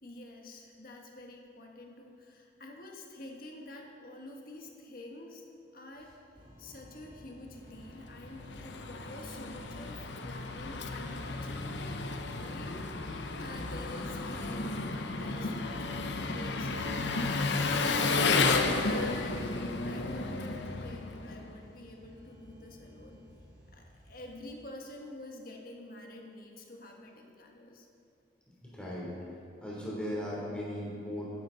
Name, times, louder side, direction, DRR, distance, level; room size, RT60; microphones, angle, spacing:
voice 1, 0.0-5.4 5.7-6.1 6.6-11.6 12.3-12.8 13.3-18.3 18.8-23.3 23.7-27.9, left 2 dB, 50° left, 1 dB, 1.5 m, -48 dB
sound 1, 6.3-24.4, equal, 40° right, 2.3 m, -55 dB
Engine, 8.0-21.6, left 3 dB, 75° left, 0.7 m, -32 dB
voice 2, 28.6-29.1 29.6-31.3, equal, 5° left, -6 dB, 3.1 m, -37 dB
13.5 x 11.0 x 3.9 m, 2.6 s
head